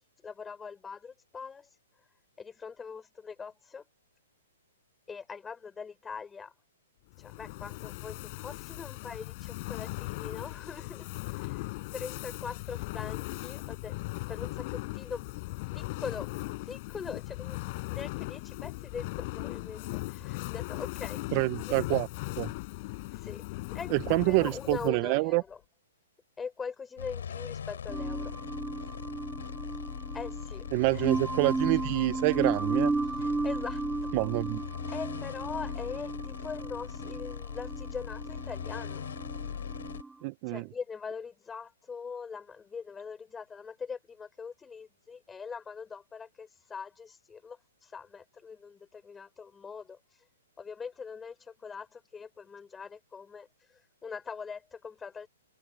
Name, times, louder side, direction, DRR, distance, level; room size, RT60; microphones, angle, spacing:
voice 1, 0.2-1.7 2.4-3.8 5.1-6.5 7.2-11.7 11.9-14.0 14.3-15.3 15.7-16.3 16.7-21.2 21.6-22.0 23.2-23.4 23.7-25.6 26.4-28.3 30.1-31.0 33.2-33.8 34.9-39.0 40.5-50.0 50.6-53.5 54.0-55.3, left 5 dB, 10° left, 4.3 m, -42 dB
Fire, 7.1-25.1, left 23 dB, 35° left, 4.4 m, -38 dB
voice 2, 21.3-22.1 22.4-22.5 23.9-25.4 30.7-32.9 34.1-34.6 40.2-40.7, right 26 dB, 35° right, 0.5 m, -27 dB
sound 1, 27.0-40.0, left 8 dB, 80° left, 3.2 m, -40 dB
sound 2, 27.9-40.1, right 3 dB, 5° right, 1.6 m, -34 dB
open air
hypercardioid pair, 155°, 0 cm